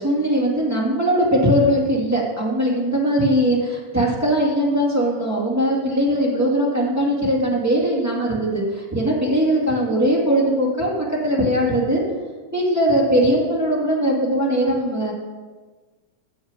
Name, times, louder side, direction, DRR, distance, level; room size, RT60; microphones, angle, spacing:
voice 1, 0.0-12.0 12.5-15.1, equal, 5° right, -5 dB, 1.9 m, -20 dB
7.4 x 7.3 x 6.2 m, 1.4 s
omnidirectional pair, 3.4 m